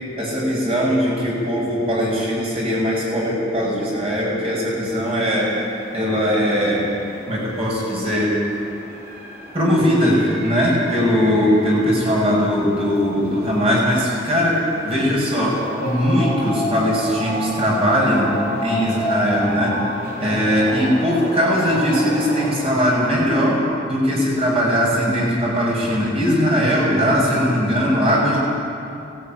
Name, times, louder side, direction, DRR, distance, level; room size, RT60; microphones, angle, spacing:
voice 1, 0.2-6.8 7.3-8.4 9.5-18.3 18.6-19.8 20.2-23.6 23.9-28.4, equal, 30° right, -4 dB, 6.6 m, -20 dB
sound 1, 4.8-22.5, equal, 55° right, 5.5 m, -32 dB
19.0 x 16.5 x 9.3 m, 2.6 s
head